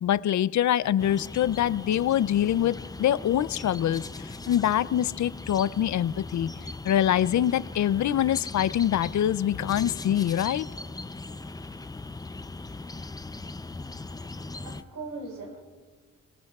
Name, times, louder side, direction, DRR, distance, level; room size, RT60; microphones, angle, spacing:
voice 1, 0.0-6.5 6.8-10.7, left 11 dB, 60° left, 17 dB, 0.5 m, -25 dB
sound 1, 1.0-14.8, left 3 dB, 10° left, 0.5 m, -39 dB
voice 2, 13.9-15.6, right 3 dB, 70° right, 1 dB, 4.8 m, -41 dB
29.0 x 18.5 x 2.4 m, 1.5 s
supercardioid pair, 60°, 32 cm